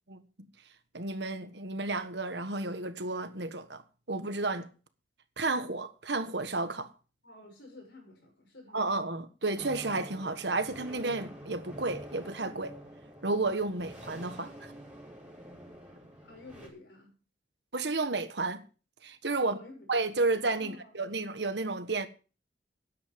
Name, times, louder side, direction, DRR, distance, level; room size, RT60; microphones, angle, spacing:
voice 1, 0.9-3.8 4.1-4.7 5.4-6.9 8.7-12.8 13.2-14.7 17.7-18.6 19.0-19.6 19.9-22.1, right 3 dB, 65° right, 1.4 m, -32 dB
voice 2, 7.2-9.1 16.2-17.1 19.4-19.9 20.6-20.9, left 2 dB, 70° left, 6.3 m, -51 dB
sound 1, 9.6-16.7, equal, 10° right, 4.9 m, -47 dB
13.0 x 10.0 x 5.3 m
head